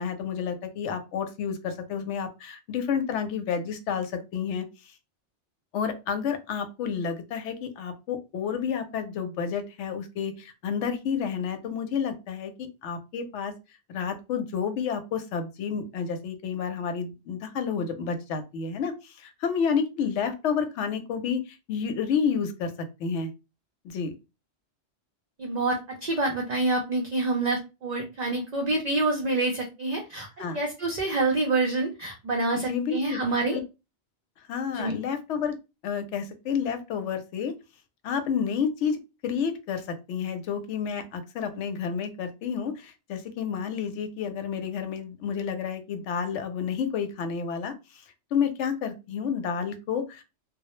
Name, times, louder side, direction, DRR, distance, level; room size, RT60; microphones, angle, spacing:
voice 1, 0.0-4.7 5.7-13.5 13.9-22.7 23.0-23.3 23.8-24.1 30.4-30.6 32.5-33.2 33.5-33.6 34.5-35.6 35.8-37.5 38.0-48.0 48.3-50.2, left 6 dB, 85° left, 7 dB, 0.9 m, -30 dB
voice 2, 25.4-30.3 30.5-33.6 34.7-35.0, right 2 dB, 55° right, 1 dB, 0.5 m, -27 dB
2.1 x 2.0 x 2.9 m, 0.27 s
omnidirectional pair, 1.2 m